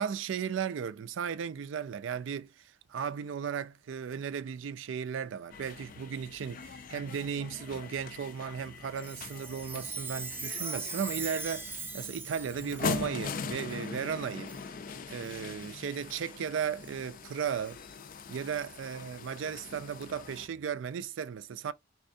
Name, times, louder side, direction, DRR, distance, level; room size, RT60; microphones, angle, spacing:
voice 1, 0.0-2.5 2.9-14.5 15.1-17.8 18.3-21.7, right 7 dB, 80° right, 0.4 m, -35 dB
sound 1, 5.5-20.5, left 5 dB, 45° left, 0.4 m, -41 dB
Chime, 9.0-13.0 13.7-13.8 14.5-14.7 15.2-15.4 16.1-16.2 16.8-16.9 17.7-17.8, right 4 dB, 10° right, 0.5 m, -40 dB
3.5 x 3.3 x 2.6 m
head